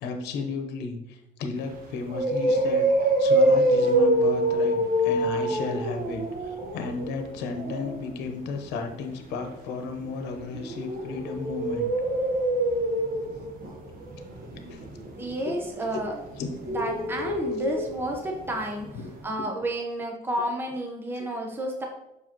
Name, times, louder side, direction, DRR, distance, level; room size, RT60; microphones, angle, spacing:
voice 1, 0.0-11.9 14.7-14.9 15.4-15.5 16.4-16.5 18.9-19.1 19.4-19.5 21.2-21.3, left 4 dB, 90° left, 5 dB, 0.9 m, -34 dB
sound 1, 1.6-1.7 2.1-8.0 10.1-18.1 18.4-18.5 18.9-19.0, right 1 dB, 60° right, 1.3 m, -25 dB
voice 2, 15.2-16.1 16.6-19.0 19.2-21.9, right 1 dB, 15° right, 1 dB, 0.9 m, -31 dB
6.6 x 4.8 x 2.9 m, 0.91 s
cardioid pair, 110°, 17 cm